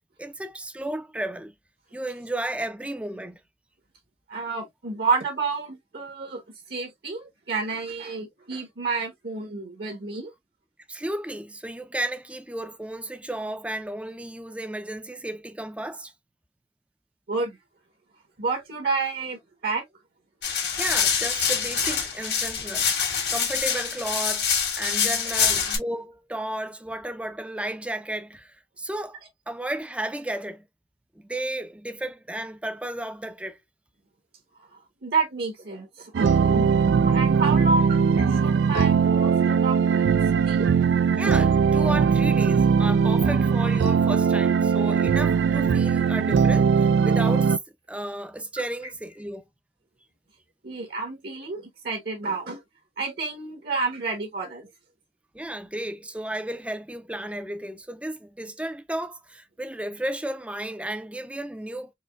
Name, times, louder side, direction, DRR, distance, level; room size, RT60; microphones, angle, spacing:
voice 1, 0.2-1.5 1.9-3.4 10.9-16.1 20.8-22.9 23.3-29.2 29.5-30.6 31.2-33.6 41.2-47.6 47.9-49.4 55.3-61.9, right 1 dB, 5° right, 0.4 m, -33 dB
voice 2, 4.3-6.4 6.7-10.3 17.3-17.6 18.4-19.9 34.6-36.7 37.0-40.1 40.4-40.7 50.6-52.6 53.0-54.7, right 4 dB, 60° right, 1.1 m, -30 dB
sound 1, 20.4-25.8, left 7 dB, 80° left, 2.1 m, -25 dB
sound 2, 36.1-47.6, right 6 dB, 80° right, 0.3 m, -20 dB
4.4 x 2.7 x 2.3 m
head